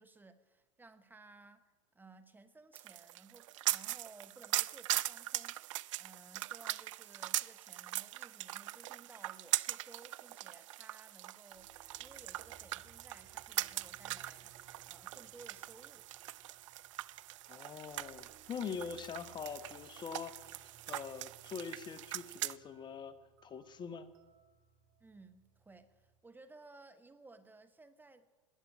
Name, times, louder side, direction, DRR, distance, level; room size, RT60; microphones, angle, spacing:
voice 1, 0.0-14.5 14.9-16.1 25.0-28.3, right 3 dB, 10° right, 10 dB, 1.0 m, -58 dB
sound 1, 2.7-22.6, right 16 dB, 70° right, 0.4 m, -41 dB
sound 2, 11.5-26.2, right 5 dB, 50° right, 2.1 m, -65 dB
voice 2, 17.5-23.1 23.4-24.1, left 6 dB, 25° left, 13 dB, 1.0 m, -44 dB
20.0 x 8.5 x 8.4 m, 1.2 s
hypercardioid pair, 100°, 17 cm